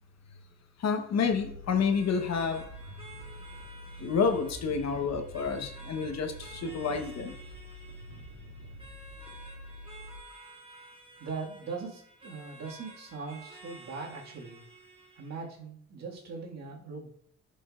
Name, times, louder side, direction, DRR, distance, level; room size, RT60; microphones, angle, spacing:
voice 1, 0.8-2.7 4.0-7.4, left 5 dB, 60° left, 5 dB, 1.1 m, -29 dB
sound 1, 1.3-10.2, left 1 dB, 40° right, 3.2 m, -46 dB
sound 2, 1.9-15.5, right 2 dB, 20° right, 1.5 m, -52 dB
voice 2, 11.2-14.6 15.2-17.1, right 4 dB, 60° right, -2 dB, 2.0 m, -40 dB
11.0 x 5.3 x 2.5 m, 0.65 s
cardioid pair, 90°, 30 cm